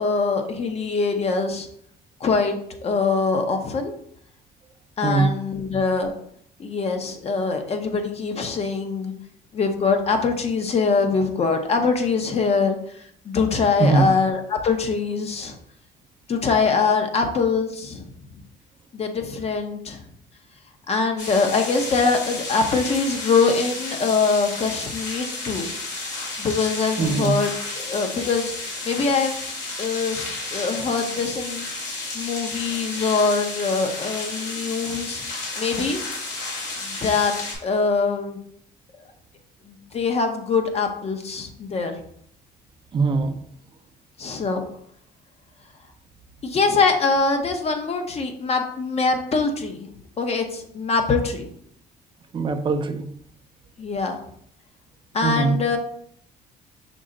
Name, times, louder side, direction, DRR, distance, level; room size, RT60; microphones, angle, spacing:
voice 1, 0.0-1.7 2.2-3.9 5.0-6.1 6.6-9.1 9.5-15.5 16.3-18.1 18.9-20.0 20.9-25.7 26.4-27.5 27.8-29.4 29.8-31.6 32.1-35.2 35.6-36.0 36.8-37.3 37.6-38.4 39.7-41.9 44.2-44.6 46.4-49.9 50.2-51.5 53.8-54.2 55.1-55.8, left 4 dB, 40° left, 0.7 m, -23 dB
voice 2, 5.0-5.3 13.8-14.1 27.0-27.4 42.9-43.4 52.3-53.1 55.2-55.6, right 4 dB, 30° right, 0.5 m, -21 dB
sound 1, 21.2-37.5, left 2 dB, 80° left, 1.9 m, -32 dB
6.1 x 2.1 x 3.7 m
cardioid pair, 110°, 17 cm